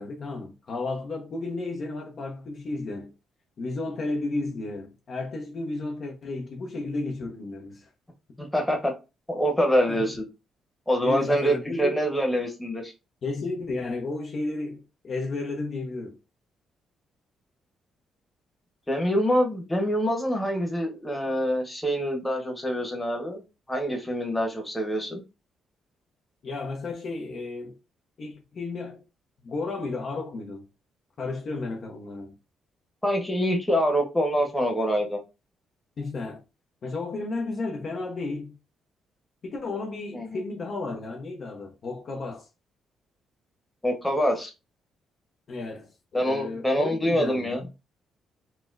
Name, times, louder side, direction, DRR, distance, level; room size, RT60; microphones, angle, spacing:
voice 1, 0.0-3.1 3.6-7.9 9.9-10.1 11.0-12.0 13.2-16.2 26.4-27.8 28.2-29.0 29.4-30.7 31.2-32.3 36.0-36.4 36.8-38.6 39.4-42.5 45.5-47.7, left 3 dB, 50° left, 0.8 m, -33 dB
voice 2, 8.4-8.9 9.3-10.2 10.9-12.9 18.9-23.4 23.7-25.2 33.0-35.2 40.1-40.4 43.8-44.5 46.1-47.7, equal, 10° left, 1.0 m, -25 dB
4.1 x 2.1 x 2.5 m
cardioid pair, 90°, 0 cm